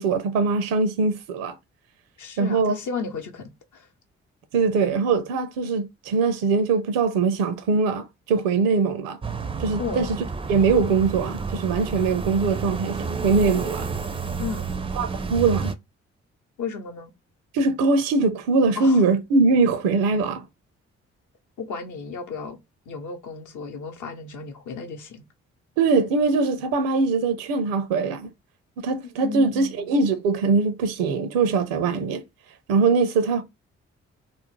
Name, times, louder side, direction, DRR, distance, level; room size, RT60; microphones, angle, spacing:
voice 1, 0.0-1.6 2.4-2.8 4.5-9.2 9.6-10.1 10.5-13.9 15.0-15.7 17.5-20.4 25.8-28.3 28.8-32.2 32.7-33.4, right 4 dB, 75° right, 0.6 m, -22 dB
voice 2, 2.2-3.9 9.8-10.1 14.4-14.7 16.6-17.1 18.8-19.0 21.6-22.6 22.9-25.2 29.2-29.9, left 5 dB, 60° left, 0.7 m, -34 dB
sound 1, 9.2-15.7, right 4 dB, 15° right, 0.4 m, -30 dB
2.6 x 2.0 x 3.0 m
hypercardioid pair, 40°, 34 cm